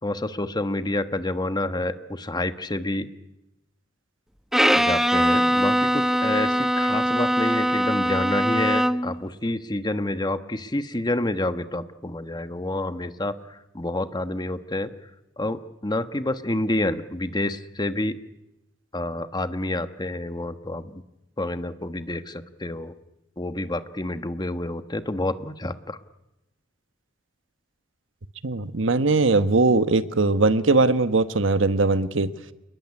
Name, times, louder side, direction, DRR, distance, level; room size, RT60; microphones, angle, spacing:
voice 1, 0.0-3.1 4.8-14.9 15.4-18.2 18.9-21.0 21.4-22.9 23.4-26.0, left 1 dB, 20° left, 10 dB, 1.2 m, -28 dB
Bowed string instrument, 4.5-9.2, equal, ahead, 0.9 m, -22 dB
voice 2, 28.4-32.3, right 3 dB, 75° right, 11 dB, 1.3 m, -20 dB
29.0 x 20.5 x 9.7 m, 0.95 s
head